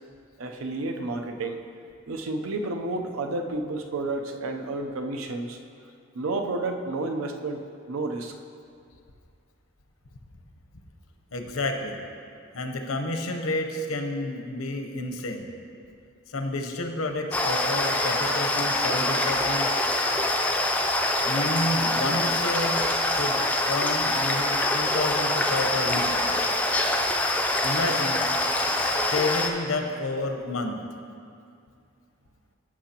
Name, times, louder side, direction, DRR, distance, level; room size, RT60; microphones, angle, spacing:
voice 1, 0.4-1.6 2.1-5.6 6.1-8.4, right 2 dB, 80° right, 4 dB, 0.7 m, -31 dB
voice 2, 11.3-12.0 12.5-15.5 16.3-19.7 21.2-22.8 23.2-26.6 27.6-28.3 28.8-30.8, left 2 dB, 85° left, 4 dB, 0.9 m, -30 dB
sound 1, 17.3-29.5, left 1 dB, 5° left, 0.4 m, -25 dB
15.0 x 5.9 x 2.9 m, 2.3 s
head